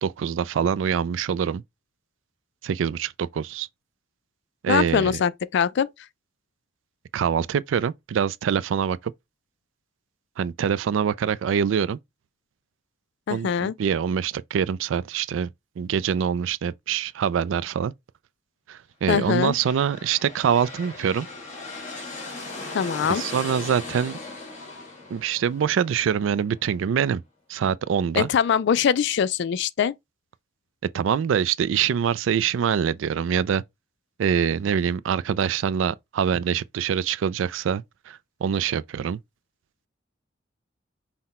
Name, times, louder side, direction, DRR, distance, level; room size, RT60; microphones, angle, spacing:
voice 1, 0.0-1.6 2.6-3.7 4.6-5.1 7.1-9.0 10.4-12.0 13.3-15.5 15.8-17.9 18.7-21.3 23.1-24.2 25.1-27.2 27.5-28.3 30.9-33.6 34.2-39.2, right 7 dB, 85° right, 0.3 m, -24 dB
voice 2, 4.7-5.9 13.3-13.7 19.1-19.5 22.7-23.2 28.2-29.9, left 7 dB, 65° left, 0.3 m, -22 dB
sound 1, 19.3-26.9, left 3 dB, 40° left, 1.9 m, -38 dB
5.7 x 2.1 x 4.1 m
head